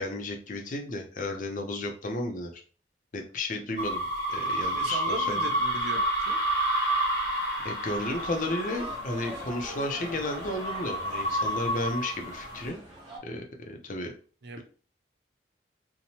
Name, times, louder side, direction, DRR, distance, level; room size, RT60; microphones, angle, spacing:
voice 1, 0.0-2.6 3.1-4.0 4.3-5.5 7.6-12.8 13.2-14.1, left 2 dB, 45° left, 3 dB, 0.5 m, -33 dB
sound 1, 3.8-12.7, right 1 dB, 70° left, 0.9 m, -30 dB
voice 2, 4.7-6.4 14.4-14.6, right 3 dB, 65° right, 6 dB, 0.4 m, -38 dB
sound 2, 7.8-13.2, right 1 dB, 25° right, 0.8 m, -43 dB
2.8 x 2.1 x 2.7 m, 0.39 s
head